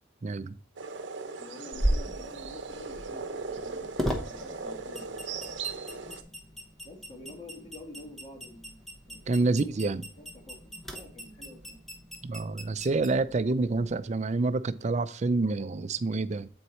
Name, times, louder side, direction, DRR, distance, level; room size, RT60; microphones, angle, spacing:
voice 1, 0.2-0.6 9.3-10.0 12.2-16.5, right 3 dB, 35° right, 0.4 m, -28 dB
sound 1, 0.8-6.2, right 4 dB, 75° right, 0.8 m, -38 dB
voice 2, 1.4-5.2 6.8-8.8 9.1-9.5 9.8-9.9 10.2-11.8, left 1 dB, 30° left, 1.9 m, -48 dB
sound 2, 1.7-14.0, equal, ahead, 1.0 m, -37 dB
8.0 x 4.6 x 4.2 m
head